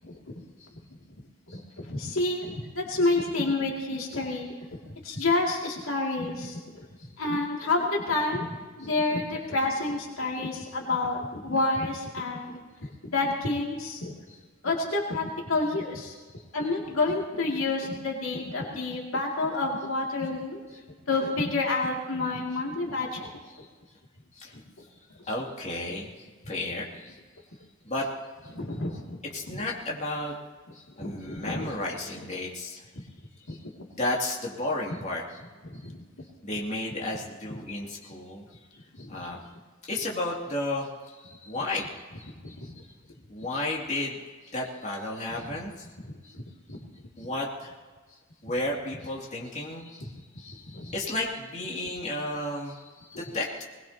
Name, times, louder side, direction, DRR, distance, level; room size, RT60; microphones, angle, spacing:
voice 1, 1.5-4.5 4.9-6.6 7.2-14.1 14.6-16.1 16.5-20.6 21.1-23.3 28.5-29.2 29.5-29.6 31.0-31.7 33.5-33.6 35.6-35.9 39.0-39.1 42.4-42.5 50.7-50.9, left 2 dB, 85° left, -1 dB, 2.6 m, -29 dB
voice 2, 25.2-26.1 26.5-27.2 27.8-28.1 28.4-28.6 29.3-30.3 30.7-32.8 33.5-33.6 33.9-35.4 36.4-38.5 39.1-39.4 39.8-41.9 42.2-42.9 43.3-44.2 44.5-45.9 46.2-46.3 47.2-47.7 48.1-53.6, left 2 dB, 35° left, -3 dB, 2.7 m, -33 dB
21.5 x 20.0 x 2.9 m, 1.4 s
head